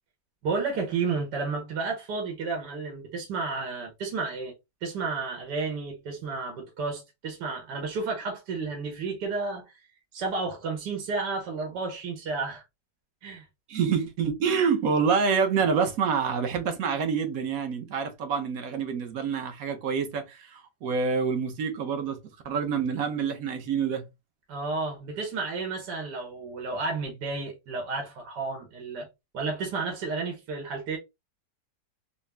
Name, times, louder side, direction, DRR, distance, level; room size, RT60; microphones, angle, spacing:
voice 1, 0.4-4.5 4.8-9.8 10.1-12.6 13.2-13.4 24.5-29.1 29.3-31.0, right 4 dB, 80° right, 1.6 m, -32 dB
voice 2, 13.7-22.2 22.4-24.1, right 6 dB, 65° right, 1.1 m, -27 dB
4.0 x 2.0 x 3.3 m
omnidirectional pair, 1.8 m